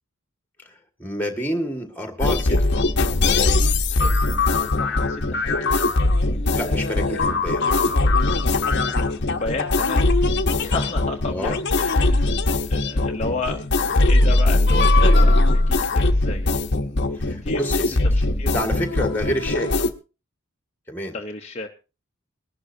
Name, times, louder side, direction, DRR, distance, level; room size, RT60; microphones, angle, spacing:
voice 1, 0.6-2.6 6.5-7.6 11.3-11.5 17.1-19.8 20.9-21.2, equal, 10° left, 5 dB, 1.8 m, -29 dB
sound 1, 2.2-19.9, left 2 dB, 55° left, 1.0 m, -20 dB
voice 2, 3.9-5.8 6.4-6.8 9.2-10.1 10.6-12.4 12.7-16.6 17.3-17.6 18.0-18.5 21.1-21.7, left 3 dB, 30° left, 2 dB, 0.9 m, -33 dB
21.0 x 11.5 x 2.8 m, 0.30 s
head